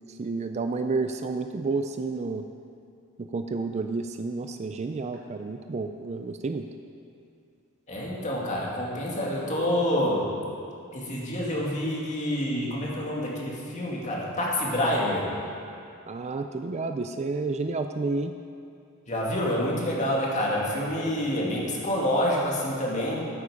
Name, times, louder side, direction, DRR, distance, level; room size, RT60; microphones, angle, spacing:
voice 1, 0.0-2.4 3.2-6.7 16.1-18.3, right 3 dB, 30° right, 7 dB, 0.4 m, -30 dB
voice 2, 7.9-10.3 10.9-15.3 19.1-23.3, left 1 dB, 35° left, -4 dB, 2.2 m, -27 dB
13.5 x 8.6 x 5.0 m, 2.5 s
head